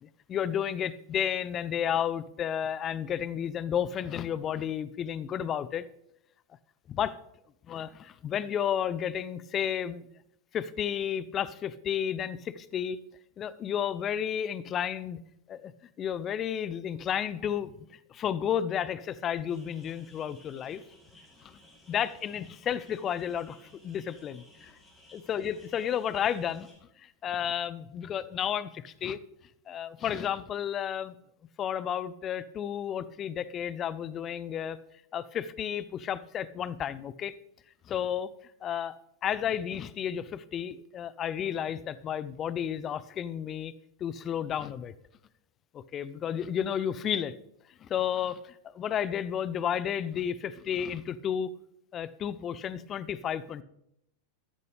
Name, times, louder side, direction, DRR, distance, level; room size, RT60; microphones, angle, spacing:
voice 1, 0.0-5.8 6.9-7.2 7.7-10.0 10.5-13.0 13.4-15.2 15.5-15.7 16.0-17.7 18.1-20.8 21.4-21.5 21.9-23.6 23.8-24.7 25.1-26.7 27.0-29.2 29.7-31.1 31.6-34.8 35.1-37.4 37.9-38.3 38.6-38.9 39.2-43.7 44.0-44.9 45.7-47.3 47.8-51.5 51.9-53.6, left 9 dB, 30° left, 17 dB, 0.5 m, -32 dB
sound 1, 19.5-26.8, left 1 dB, 10° left, 5.5 m, -58 dB
14.0 x 10.5 x 3.3 m, 0.78 s
figure-of-eight pair, 90°, 0 cm